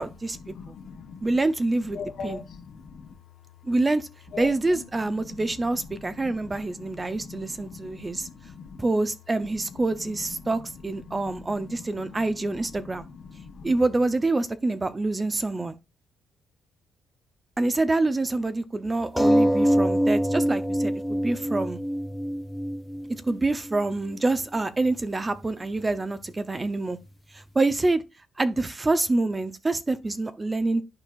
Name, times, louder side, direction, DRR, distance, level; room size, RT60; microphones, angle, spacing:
voice 1, 0.0-0.4 1.2-2.4 3.6-4.1 4.4-8.3 8.8-13.0 13.6-15.8 17.6-21.8 23.3-27.0 27.3-28.0 28.4-30.8, right 2 dB, 20° right, 0.7 m, -26 dB
voice 2, 0.5-1.3 1.9-3.1 4.3-4.8 6.2-6.9 7.2-8.8 11.1-11.7 12.1-12.2 13.1-13.7, left 5 dB, 60° left, 1.0 m, -41 dB
sound 1, 19.2-24.2 24.9-25.0 25.3-25.4, equal, 5° left, 0.9 m, -24 dB
11.5 x 4.4 x 2.4 m
cardioid pair, 90°, 0 cm